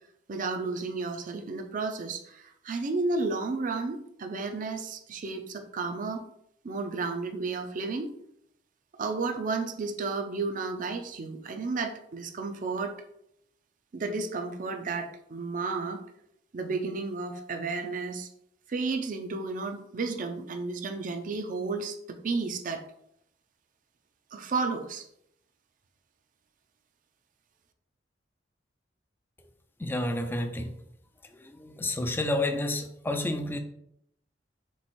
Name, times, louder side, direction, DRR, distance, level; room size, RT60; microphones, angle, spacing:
voice 1, 0.3-6.2 6.6-8.1 9.0-12.9 13.9-16.0 16.5-18.3 18.7-22.8 24.3-25.1, right 3 dB, 45° right, 5 dB, 0.5 m, -32 dB
voice 2, 29.8-30.7 31.4-33.6, left 1 dB, 10° left, 6 dB, 0.3 m, -30 dB
3.4 x 3.1 x 4.2 m, 0.75 s
head